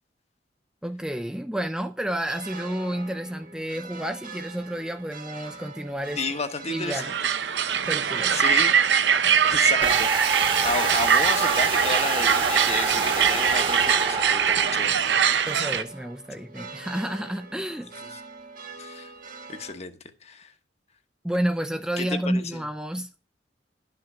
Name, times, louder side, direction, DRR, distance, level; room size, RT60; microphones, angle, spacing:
voice 1, 0.8-6.2 6.7-7.1 7.9-8.4 15.5-17.9 21.2-23.1, right 1 dB, 5° right, 0.5 m, -30 dB
sound 1, 2.2-19.7, right 4 dB, 50° right, 1.4 m, -43 dB
voice 2, 6.2-7.1 8.3-8.7 9.4-15.2 18.8-19.1 19.5-20.5 22.0-22.7, left 4 dB, 40° left, 1.1 m, -32 dB
sound 2, 6.9-15.8, right 8 dB, 75° right, 0.7 m, -22 dB
sound 3, 9.8-14.8, right 4 dB, 30° right, 1.2 m, -27 dB
11.5 x 5.8 x 6.0 m
head